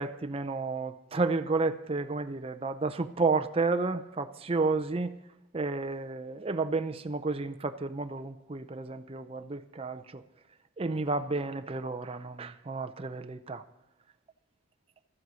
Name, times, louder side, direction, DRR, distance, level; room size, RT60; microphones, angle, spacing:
voice 1, 0.0-5.1 5.5-10.2 10.8-13.6, right 3 dB, 30° right, 0.5 m, -31 dB
13.5 x 7.8 x 8.0 m
head